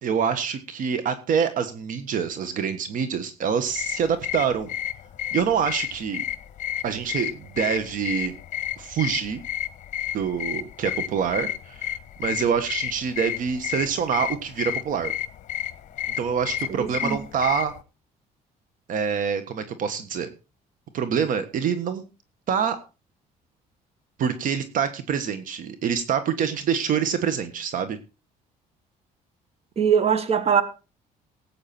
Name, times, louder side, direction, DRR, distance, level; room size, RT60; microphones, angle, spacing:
voice 1, 0.0-4.7 5.3-6.2 6.8-8.3 8.8-9.4 10.1-15.1 16.2-17.7 18.9-20.3 20.9-22.0 22.5-22.8 24.2-28.0, right 7 dB, 60° right, 1.5 m, -26 dB
sound 1, 3.7-17.8, left 11 dB, 55° left, 1.4 m, -32 dB
voice 2, 16.7-17.2 29.8-30.6, right 7 dB, 40° right, 1.8 m, -21 dB
17.5 x 8.8 x 4.3 m
cardioid pair, 120°, 16 cm